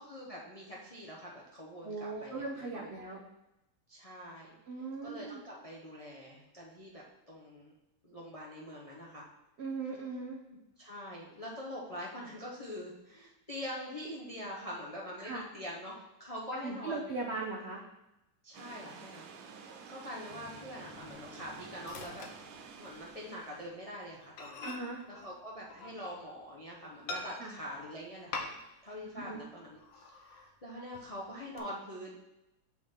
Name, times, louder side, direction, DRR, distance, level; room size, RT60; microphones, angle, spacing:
voice 1, 0.0-3.0 3.9-4.5 5.0-7.7 8.0-9.3 10.8-17.2 18.4-19.3 19.9-22.2 22.8-24.7 25.1-28.5 28.8-32.1, equal, 50° left, -4 dB, 0.4 m, -44 dB
voice 2, 1.8-3.2 4.7-5.4 9.6-10.4 15.2-15.4 16.6-17.8 24.6-25.0 27.4-27.5 29.1-29.4, right 3 dB, 70° right, 0 dB, 0.6 m, -39 dB
sound 1, 18.5-23.7, right 5 dB, 90° right, 1.5 m, -50 dB
Microwave oven, 20.3-23.2 23.5-23.7 24.0-24.1 24.4-26.4 27.1-27.7 28.3-28.9 29.2-29.3 29.8-30.5 30.9-31.6, left 3 dB, 80° left, 1.5 m, -45 dB
6.1 x 5.7 x 3.6 m, 0.92 s
omnidirectional pair, 2.1 m